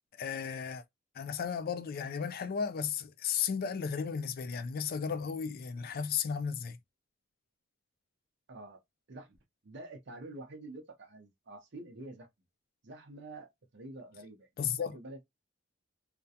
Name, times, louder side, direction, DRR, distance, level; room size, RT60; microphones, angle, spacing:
voice 1, 0.1-0.8 1.1-6.8 14.6-15.0, left 7 dB, 45° left, 0.3 m, -34 dB
voice 2, 8.5-8.8 9.1-9.4 9.6-12.3 12.8-14.5 14.9-15.2, right 2 dB, 55° right, 0.6 m, -47 dB
2.4 x 2.1 x 2.6 m
head